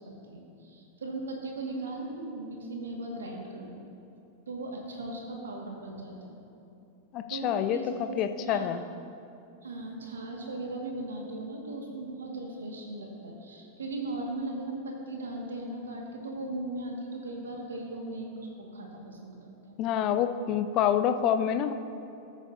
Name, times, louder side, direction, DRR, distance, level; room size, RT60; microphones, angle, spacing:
voice 1, 0.0-3.8 4.5-6.4 7.3-8.2 8.4-8.7 9.6-19.4 19.6-19.8, right 2 dB, 70° right, 0 dB, 1.8 m, -38 dB
voice 2, 7.1-7.8 8.2-8.8 19.8-21.7, left 9 dB, 35° left, 10 dB, 0.5 m, -27 dB
20.0 x 8.2 x 2.7 m, 2.7 s
figure-of-eight pair, 90°, 0 cm